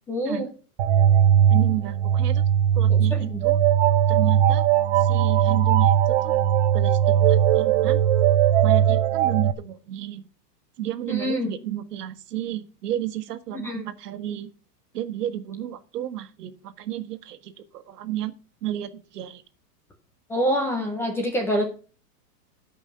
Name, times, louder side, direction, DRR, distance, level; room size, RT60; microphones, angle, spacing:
voice 1, 0.1-0.5 3.1-3.4 11.1-11.5 13.5-13.8 20.3-21.6, equal, 5° left, 3 dB, 0.5 m, -26 dB
sound 1, 0.8-9.5, right 10 dB, 35° right, 0.6 m, -19 dB
voice 2, 1.5-2.4 2.7-3.6 4.1-4.6 5.0-6.3 6.7-8.0 8.6-10.3 10.8-14.5 14.9-18.3 18.6-19.4, right 13 dB, 75° right, 11 dB, 1.5 m, -32 dB
12.5 x 5.4 x 5.5 m, 0.37 s
supercardioid pair, 165°, 47 cm